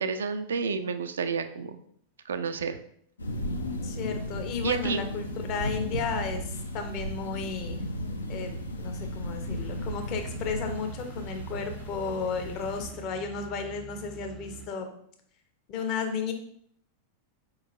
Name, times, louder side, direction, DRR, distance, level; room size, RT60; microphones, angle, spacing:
voice 1, 0.0-1.8 2.3-2.8 4.6-5.0 5.9-6.1, right 5 dB, 65° right, 9 dB, 0.4 m, -30 dB
sound 1, 3.2-12.9, equal, 75° left, 0.6 m, -35 dB
voice 2, 3.8-7.8 8.3-14.9 15.7-16.3, left 5 dB, 40° left, 5 dB, 0.8 m, -34 dB
sound 2, 9.5-14.7, right 7 dB, 5° right, 0.5 m, -46 dB
4.7 x 3.7 x 3.1 m, 0.66 s
figure-of-eight pair, 90°, 0 cm